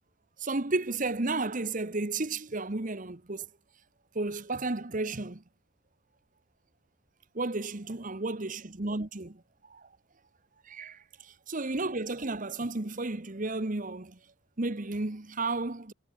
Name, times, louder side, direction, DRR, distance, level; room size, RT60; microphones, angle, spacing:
voice 1, 0.4-3.5 4.1-5.4 7.3-9.9 10.6-14.2 14.6-15.9, right 2 dB, 40° right, 1.2 m, -33 dB
head